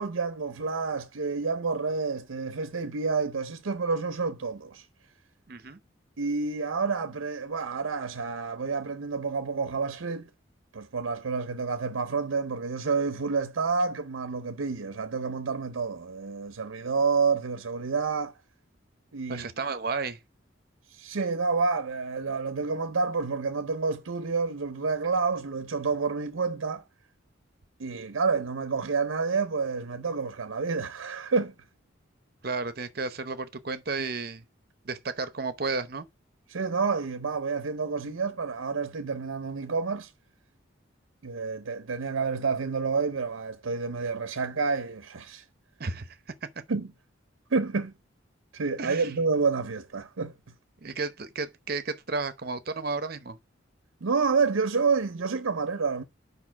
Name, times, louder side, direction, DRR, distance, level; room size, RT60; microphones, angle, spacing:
voice 1, 0.0-4.8 6.2-10.3 10.7-18.3 19.1-19.5 20.9-26.8 27.8-31.5 36.5-40.1 41.2-45.4 46.7-46.9 47.5-47.9 48.5-50.3 54.0-56.0, right 4 dB, 85° right, 0.6 m, -29 dB
voice 2, 5.5-5.8 19.3-20.2 32.4-34.4 34.8-36.1 45.8-46.2 46.4-46.5 48.8-49.1 50.8-53.4, right 4 dB, 50° right, 0.8 m, -32 dB
5.1 x 4.3 x 5.8 m
head